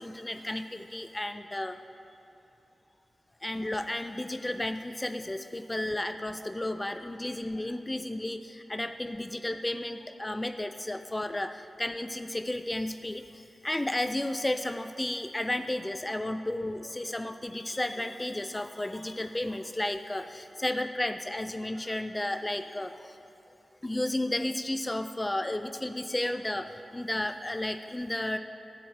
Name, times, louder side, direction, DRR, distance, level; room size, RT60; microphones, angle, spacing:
voice 1, 0.0-1.8 3.4-11.5 11.8-13.2 13.6-23.1 23.8-26.7 26.9-28.4, left 1 dB, 20° left, 8 dB, 0.4 m, -33 dB
11.0 x 4.4 x 7.8 m, 2.9 s
cardioid pair, 45°, 0 cm